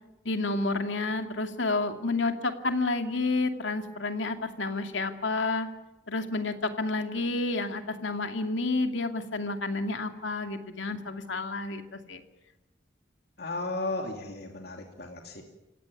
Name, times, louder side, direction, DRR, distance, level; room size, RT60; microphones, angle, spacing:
voice 1, 0.2-5.7 6.1-12.2, left 3 dB, 75° left, 6 dB, 2.5 m, -30 dB
voice 2, 13.4-15.4, left 2 dB, 55° left, 2 dB, 2.6 m, -34 dB
28.0 x 17.0 x 9.8 m, 1.0 s
head